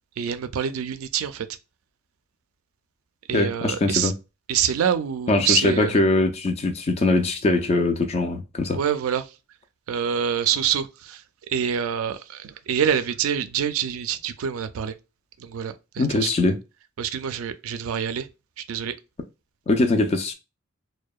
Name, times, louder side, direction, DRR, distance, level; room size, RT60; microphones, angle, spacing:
voice 1, 0.2-1.5 3.3-4.1 4.5-6.0 8.7-9.3 9.9-14.9 15.4-16.3 17.0-18.3 18.6-18.9, right 8 dB, 80° right, 0.3 m, -26 dB
voice 2, 3.3-4.1 5.3-8.8 16.0-16.6 19.7-20.3, left 2 dB, 30° left, 0.3 m, -22 dB
2.7 x 2.1 x 2.2 m
head